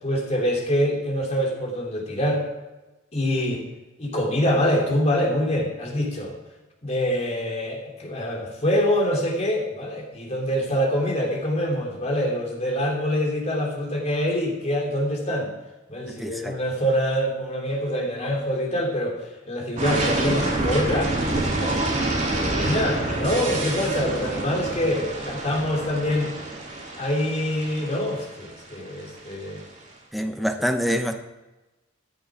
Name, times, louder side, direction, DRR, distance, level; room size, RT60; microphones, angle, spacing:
voice 1, 0.0-2.4 3.1-3.7 4.0-6.3 6.8-15.5 15.9-21.8 22.3-26.3 27.0-29.6 30.4-30.5, equal, 35° left, 0 dB, 3.2 m, -25 dB
voice 2, 16.1-16.6 30.1-31.2, equal, ahead, 5 dB, 0.9 m, -26 dB
sound 1, 19.8-29.6, right 2 dB, 40° right, 4.1 m, -27 dB
15.0 x 10.0 x 4.9 m, 1.1 s
head